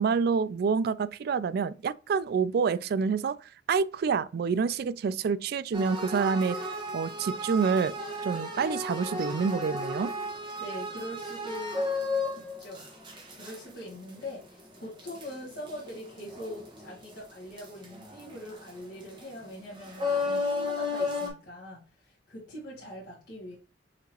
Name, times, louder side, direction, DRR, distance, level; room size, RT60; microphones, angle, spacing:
voice 1, 0.0-6.6 6.9-7.9 8.2-10.1, right 5 dB, 60° right, 0.3 m, -27 dB
sound 1, 5.7-17.3 17.6-21.3, left 2 dB, 25° right, 1.3 m, -34 dB
voice 2, 10.6-11.9 12.4-12.9 13.3-23.6, left 1 dB, 60° left, 1.7 m, -42 dB
5.8 x 2.9 x 2.9 m
head